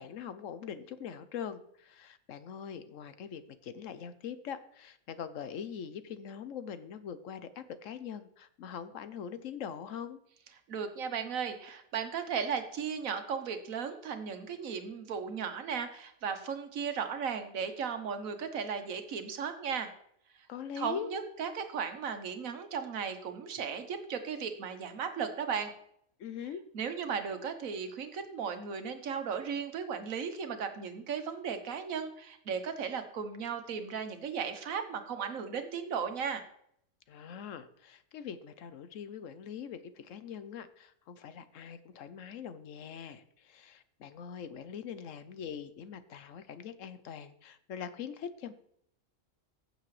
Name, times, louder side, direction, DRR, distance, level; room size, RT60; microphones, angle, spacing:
voice 1, 0.0-10.2 20.5-21.1 26.2-26.6 37.1-48.5, left 8 dB, 70° left, 12 dB, 1.0 m, -42 dB
voice 2, 10.7-19.9 20.8-25.7 26.7-36.4, right 6 dB, 80° right, 8 dB, 1.4 m, -36 dB
15.0 x 6.8 x 3.2 m, 0.71 s
omnidirectional pair, 1.4 m